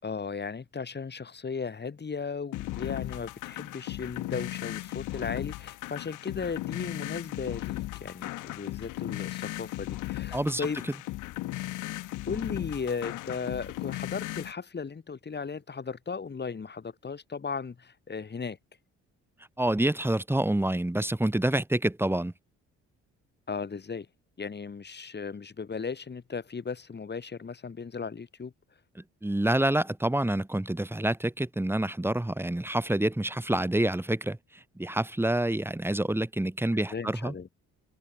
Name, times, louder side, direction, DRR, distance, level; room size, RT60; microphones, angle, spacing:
voice 1, 0.0-10.8 12.0-18.6 23.5-24.1 24.4-28.5 36.7-37.5, left 5 dB, 35° left, 4.1 m, -36 dB
sound 1, 2.5-14.5, left 17 dB, 90° left, 1.1 m, -36 dB
voice 2, 10.3-10.7 19.6-22.3 29.2-34.4 34.8-37.3, right 1 dB, 5° right, 1.9 m, -27 dB
cardioid pair, 90°, 30 cm